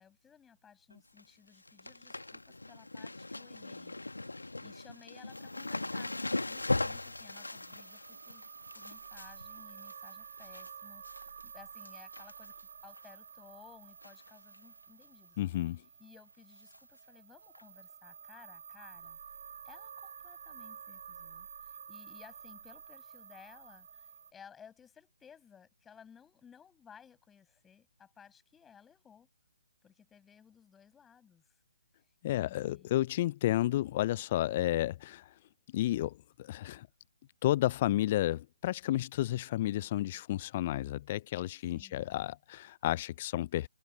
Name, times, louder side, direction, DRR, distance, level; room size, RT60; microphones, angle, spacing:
voice 1, 0.0-4.0 4.2-8.4 8.7-15.4 16.0-19.2 19.6-29.3 29.8-31.6 32.3-33.0 41.7-42.2, left 7 dB, 10° left, 7.8 m, -58 dB
sound 1, 0.9-1.2 1.5-10.7 11.0-11.5 11.8-12.6 13.0-13.1 14.0-14.3 14.5-14.6 15.0-15.1 16.7-16.8 17.5-17.6, left 2 dB, 80° left, 1.9 m, -39 dB
sound 2, 5.3-24.3, right 7 dB, 50° right, 5.2 m, -51 dB
voice 2, 15.4-15.8 32.2-35.3 35.7-36.9 37.4-43.7, left 14 dB, 30° left, 0.6 m, -31 dB
figure-of-eight pair, 140°, 0 cm